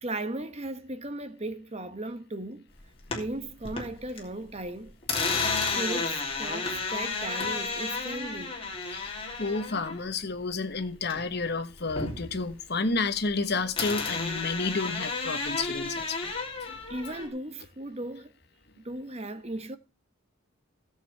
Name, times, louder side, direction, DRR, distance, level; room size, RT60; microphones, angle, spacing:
voice 1, 0.0-2.7 3.1-5.0 5.7-8.6 16.9-18.3 18.8-19.8, right 2 dB, 30° right, 1.0 m, -36 dB
sound 1, 2.8-4.2 4.5-11.4 11.7-13.4 13.8-17.3, left 4 dB, 25° left, 2.9 m, -32 dB
voice 2, 8.9-16.3 16.7-16.8, left 3 dB, 50° left, 1.2 m, -31 dB
16.5 x 7.6 x 3.4 m
head